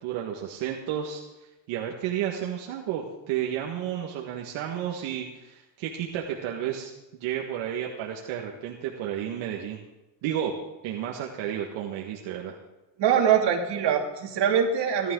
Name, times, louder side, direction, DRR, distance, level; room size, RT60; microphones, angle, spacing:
voice 1, 0.0-1.2 1.7-6.9 7.2-9.8 10.2-10.5 10.8-12.6, right 10 dB, 80° right, -1 dB, 1.8 m, -32 dB
voice 2, 13.0-15.1, right 8 dB, 60° right, 1 dB, 2.7 m, -23 dB
17.5 x 12.0 x 3.9 m, 1.0 s
cardioid pair, 110°, 48 cm